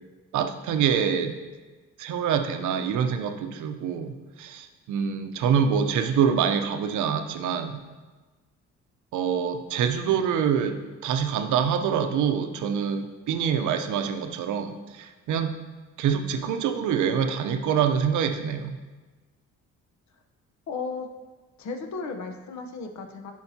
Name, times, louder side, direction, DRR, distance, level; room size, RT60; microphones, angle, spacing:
voice 1, 0.3-1.4 2.0-7.8 9.1-15.6 16.0-18.8, right 7 dB, 80° right, 7 dB, 0.7 m, -25 dB
voice 2, 20.7-21.1 21.6-23.3, left 4 dB, 70° left, 4 dB, 0.9 m, -34 dB
11.5 x 4.6 x 2.8 m, 1.3 s
cardioid pair, 90°, 30 cm